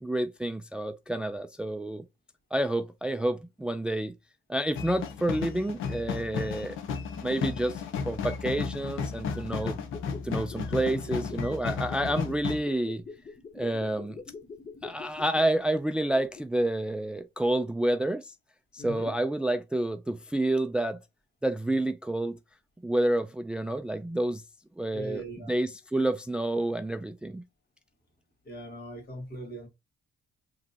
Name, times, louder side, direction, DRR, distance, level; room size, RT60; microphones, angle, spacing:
voice 1, 0.0-2.0 2.5-4.1 4.5-6.8 7.2-9.8 10.2-13.0 13.5-14.2 14.8-18.3 18.7-21.0 21.4-22.4 22.8-24.4 24.8-27.4, right 1 dB, 5° right, 0.3 m, -29 dB
sound 1, 4.8-12.6, left 5 dB, 85° left, 0.8 m, -34 dB
sound 2, 9.8-16.6 16.9-17.0, left 4 dB, 30° left, 0.7 m, -45 dB
voice 2, 18.8-19.1 24.9-25.5 28.4-29.7, right 1 dB, 50° left, 2.0 m, -40 dB
5.1 x 3.1 x 2.7 m
cardioid pair, 90°, 20 cm